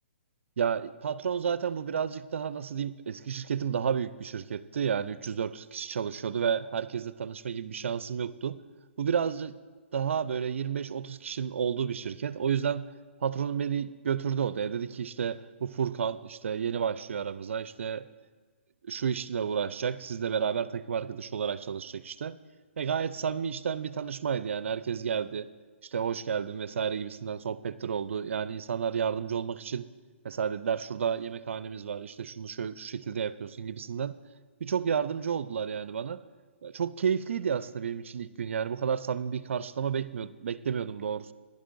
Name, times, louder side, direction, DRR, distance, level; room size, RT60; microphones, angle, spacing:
voice 1, 0.6-8.6 9.0-9.6 9.9-12.9 13.2-18.1 18.9-22.4 22.8-25.5 25.8-29.9 30.2-34.2 34.6-36.2 36.6-41.3, right 7 dB, 65° right, 16 dB, 0.4 m, -31 dB
15.5 x 11.0 x 2.6 m, 1.4 s
figure-of-eight pair, 135°, 7 cm